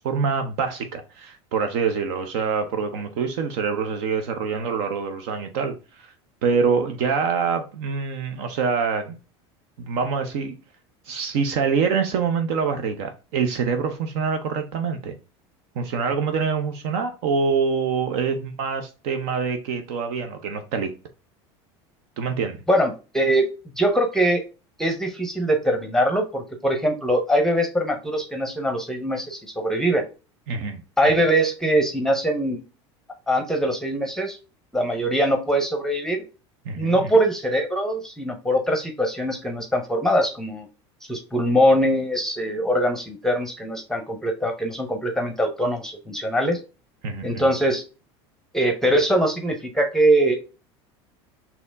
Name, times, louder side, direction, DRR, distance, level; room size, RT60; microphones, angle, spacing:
voice 1, 0.0-6.1 6.4-9.1 9.8-10.6 11.1-15.1 15.8-20.9 22.2-22.6 30.5-30.8 36.7-37.1 47.0-47.5, right 5 dB, 70° right, 0.7 m, -25 dB
voice 2, 22.7-23.5 23.8-24.4 24.8-30.0 31.0-32.6 33.3-34.4 34.7-36.2 36.8-40.7 41.1-46.6 47.2-47.8 48.5-50.4, right 1 dB, 5° left, 0.7 m, -22 dB
4.2 x 2.9 x 3.4 m
hypercardioid pair, 95°, 14 cm